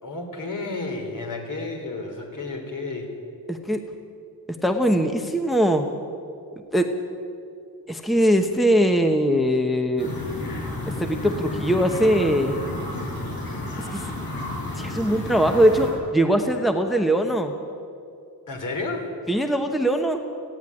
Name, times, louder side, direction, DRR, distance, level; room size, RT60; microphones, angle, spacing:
voice 1, 0.0-3.2 18.5-19.1, left 3 dB, 55° left, 2 dB, 3.8 m, -31 dB
voice 2, 3.5-3.9 4.6-5.9 6.7-6.9 7.9-10.1 10.9-12.6 13.8-14.1 14.7-17.5 19.3-20.2, equal, ahead, 5 dB, 1.0 m, -21 dB
sound 1, 10.0-15.9, left 2 dB, 75° left, 7.2 m, -31 dB
29.5 x 10.5 x 9.8 m, 2.5 s
wide cardioid pair, 155°, 37 cm